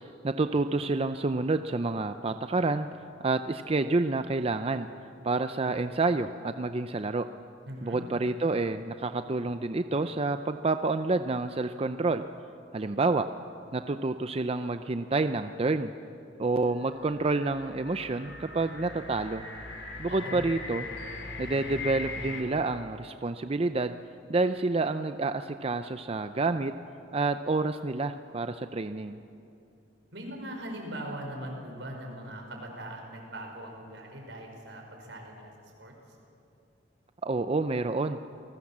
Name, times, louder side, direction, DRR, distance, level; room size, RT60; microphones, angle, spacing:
voice 1, 0.2-4.9 5.2-7.2 7.8-12.2 12.7-13.2 13.7-15.9 16.4-19.5 20.0-20.9 21.4-24.0 24.3-26.7 27.1-29.2 37.2-38.2, right 3 dB, 35° right, 9 dB, 0.5 m, -28 dB
voice 2, 7.7-8.0 20.1-20.4 30.1-35.5 35.8-35.9, right 1 dB, 80° right, 2 dB, 5.2 m, -40 dB
sound 1, 16.8-22.4, left 3 dB, 75° left, 3.4 m, -40 dB
28.5 x 19.0 x 7.3 m, 2.7 s
head